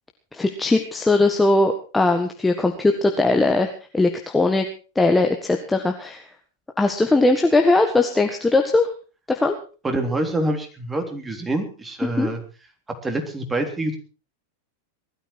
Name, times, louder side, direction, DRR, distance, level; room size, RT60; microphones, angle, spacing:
voice 1, 0.3-4.7 5.0-6.2 6.8-8.9 9.3-9.6 12.0-12.3, left 2 dB, 10° left, 4 dB, 1.7 m, -19 dB
voice 2, 9.8-12.4 13.0-14.0, right 1 dB, 15° right, 4 dB, 3.6 m, -26 dB
20.0 x 13.0 x 4.7 m, 0.36 s
figure-of-eight pair, 90°, 0 cm